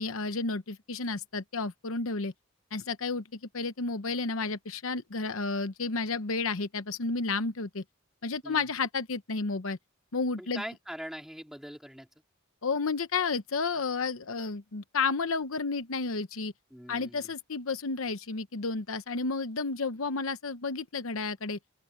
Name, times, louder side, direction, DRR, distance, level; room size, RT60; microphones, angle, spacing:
voice 1, 0.0-2.3 2.7-7.8 8.2-9.8 10.1-10.6 12.6-16.5 16.9-21.6, left 4 dB, 85° left, 0.9 m, -31 dB
voice 2, 10.4-12.1 16.7-17.3, equal, ahead, 3.4 m, -42 dB
open air
head